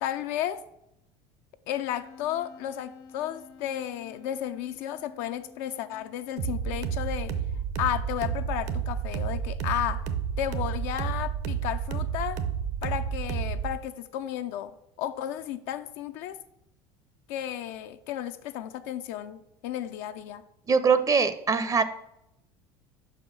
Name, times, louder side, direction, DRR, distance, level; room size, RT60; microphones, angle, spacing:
voice 1, 0.0-0.6 1.7-7.3 7.8-10.0 10.4-12.4 12.8-14.7 15.0-16.4 17.3-20.4, left 11 dB, 75° left, 8 dB, 0.4 m, -33 dB
Wind instrument woodwind instrument, 2.0-7.6, left 5 dB, 90° left, 0.9 m, -51 dB
sound 1, 6.4-13.8, right 7 dB, 65° right, 0.8 m, -31 dB
voice 2, 20.7-21.8, right 5 dB, 25° right, 13 dB, 0.5 m, -22 dB
5.3 x 4.8 x 5.9 m, 0.82 s
supercardioid pair, 95°, 13 cm